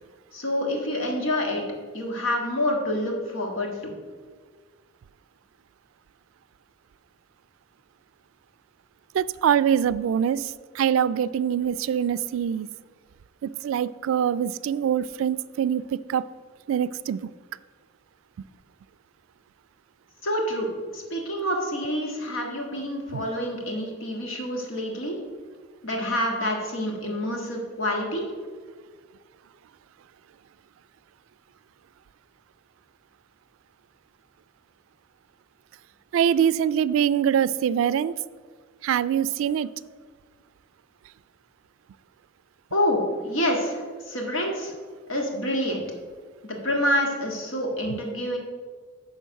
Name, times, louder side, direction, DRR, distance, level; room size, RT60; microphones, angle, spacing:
voice 1, 0.3-1.6 1.9-3.9 20.2-25.2 25.8-28.2 42.7-44.7 45.1-45.8 46.4-48.4, left 1 dB, 90° left, 1 dB, 1.7 m, -27 dB
voice 2, 9.1-12.7 13.4-16.3 16.7-17.3 23.1-23.2 36.1-38.1 38.8-39.7 47.9-48.0, right 8 dB, 85° right, 16 dB, 0.3 m, -24 dB
10.0 x 3.8 x 6.3 m, 1.5 s
head